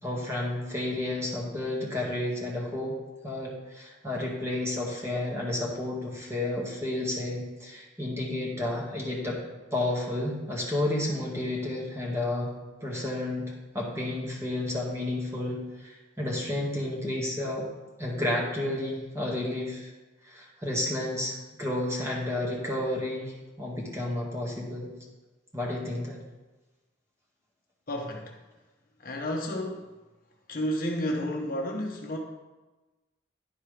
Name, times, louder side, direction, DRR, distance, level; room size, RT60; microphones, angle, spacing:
voice 1, 0.0-3.0 3.2-9.4 9.7-12.5 12.8-13.5 13.7-17.7 18.0-19.9 20.2-24.9 25.5-26.2, left 1 dB, 15° right, -4 dB, 1.9 m, -31 dB
voice 2, 27.9-28.4 29.0-29.9 30.5-32.2, equal, 50° left, 1 dB, 1.0 m, -31 dB
10.5 x 4.5 x 5.0 m, 1.1 s
head